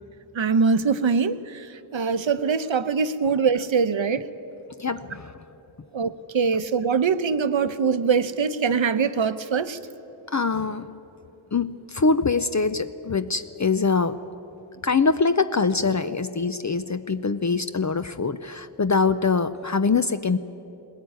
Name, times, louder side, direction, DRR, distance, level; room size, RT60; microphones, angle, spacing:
voice 1, 0.4-1.4 1.9-4.2 5.9-9.8, right 5 dB, 75° right, 12 dB, 0.9 m, -23 dB
voice 2, 4.8-5.3 10.3-10.9 11.5-14.2 14.8-20.4, left 4 dB, 40° left, 10 dB, 0.6 m, -23 dB
20.0 x 17.5 x 9.3 m, 2.9 s
wide cardioid pair, 50°, 47 cm